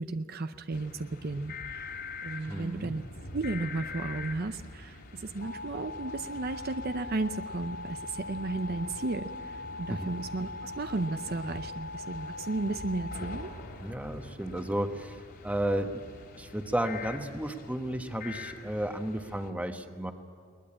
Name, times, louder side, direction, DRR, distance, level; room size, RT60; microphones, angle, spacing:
voice 1, 0.0-1.9 2.2-3.0 3.3-13.5, right 3 dB, 50° right, 9 dB, 0.7 m, -34 dB
sound 1, 0.7-19.5, left 3 dB, 60° left, 3.2 m, -42 dB
voice 2, 2.5-3.0 9.9-10.1 13.8-16.0 16.4-20.1, right 1 dB, 10° right, 6 dB, 1.2 m, -33 dB
21.0 x 20.0 x 8.7 m, 2.2 s
head